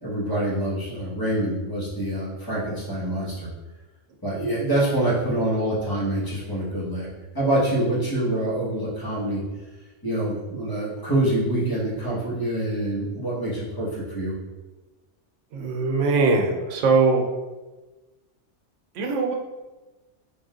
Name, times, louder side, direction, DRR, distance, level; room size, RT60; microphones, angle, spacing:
voice 1, 0.0-3.5 4.2-7.1 7.3-9.4 10.0-14.3, right 1 dB, 20° left, -8 dB, 1.2 m, -25 dB
voice 2, 15.5-17.2 19.0-19.3, right 4 dB, 85° right, 3 dB, 0.9 m, -21 dB
4.0 x 3.5 x 2.4 m, 1.2 s
omnidirectional pair, 1.2 m